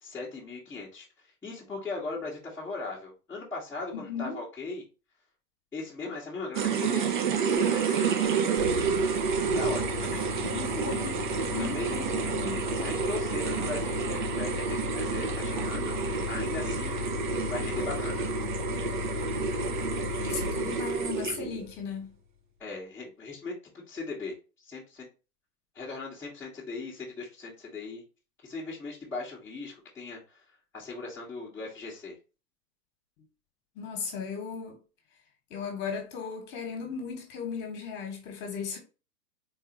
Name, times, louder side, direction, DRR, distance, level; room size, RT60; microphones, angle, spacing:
voice 1, 0.0-4.8 5.7-8.3 9.4-10.2 11.6-11.9 12.7-15.9 16.3-17.0 17.4-18.3 22.6-25.1 25.7-28.0 28.4-30.4 30.7-32.2, left 3 dB, 5° left, 0.9 m, -38 dB
voice 2, 3.9-4.4 10.4-11.2 11.5-12.7 20.2-22.1 33.7-34.8 35.5-38.8, left 6 dB, 20° left, 1.3 m, -36 dB
sound 1, 6.5-21.6, right 6 dB, 30° right, 0.5 m, -30 dB
sound 2, 8.6-22.0, left 8 dB, 70° left, 0.7 m, -36 dB
4.0 x 4.0 x 2.8 m
figure-of-eight pair, 110°, 48 cm